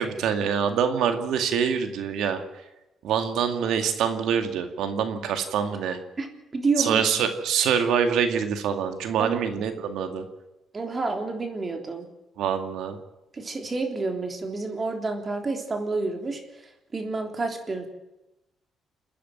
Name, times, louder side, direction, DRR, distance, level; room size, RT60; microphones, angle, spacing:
voice 1, 0.0-2.4 3.0-6.0 6.8-10.3 12.4-13.0, right 7 dB, 85° right, 7 dB, 2.2 m, -25 dB
voice 2, 6.2-7.1 9.2-9.4 10.7-12.1 13.3-17.9, right 3 dB, 30° right, 4 dB, 3.5 m, -29 dB
28.0 x 10.0 x 9.3 m, 0.96 s
cardioid pair, 90°, 0 cm